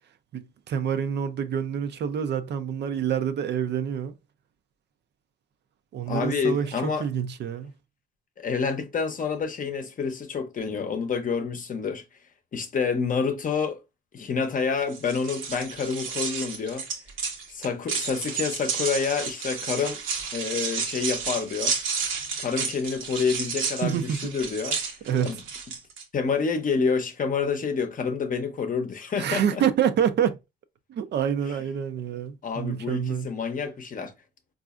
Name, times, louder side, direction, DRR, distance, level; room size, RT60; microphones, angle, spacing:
voice 1, 0.3-4.1 5.9-7.7 23.8-24.3 25.1-25.4 29.2-30.4 30.9-33.3, right 8 dB, 60° right, 0.4 m, -27 dB
voice 2, 6.1-7.0 8.4-12.0 12.5-13.8 14.1-16.9 17.5-20.0 20.3-21.7 22.4-24.8 25.2-25.4 26.1-29.6 32.4-34.1, left 5 dB, 40° left, 0.7 m, -28 dB
sound 1, 14.9-26.0, right 5 dB, 80° right, 0.9 m, -31 dB
4.0 x 2.4 x 2.3 m
cardioid pair, 90°, 20 cm